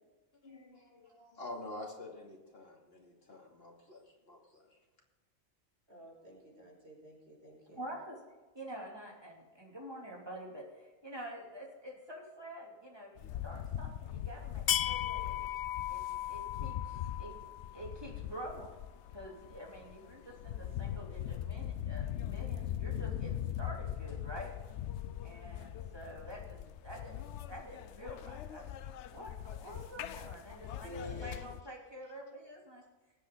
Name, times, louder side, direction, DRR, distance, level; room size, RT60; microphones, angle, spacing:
voice 1, 0.4-4.8, left 2 dB, 50° left, -1 dB, 2.9 m, -48 dB
voice 2, 5.9-7.8 30.8-31.4, right 1 dB, 60° right, -2 dB, 5.1 m, -50 dB
voice 3, 7.7-8.2 8.5-15.3 15.9-16.0 16.3-17.3 17.7-18.7 19.1-24.5 25.2-26.6 26.8-32.8, equal, 20° right, -2 dB, 3.1 m, -47 dB
sound 1, 13.2-31.6, left 11 dB, 70° left, 0.9 m, -39 dB
20.0 x 8.4 x 3.9 m, 1.3 s
omnidirectional pair, 1.2 m